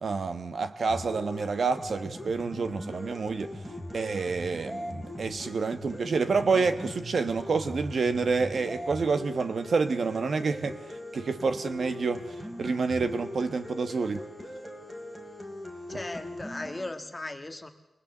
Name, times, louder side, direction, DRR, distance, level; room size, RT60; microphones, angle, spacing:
voice 1, 0.0-3.5 3.9-10.8 11.1-14.2, right 4 dB, 55° right, 1.2 m, -28 dB
sound 1, 0.9-16.9, left 1 dB, 10° right, 2.9 m, -40 dB
voice 2, 15.9-17.7, left 2 dB, 15° left, 1.5 m, -37 dB
25.0 x 19.5 x 7.8 m
wide cardioid pair, 170°, 0 cm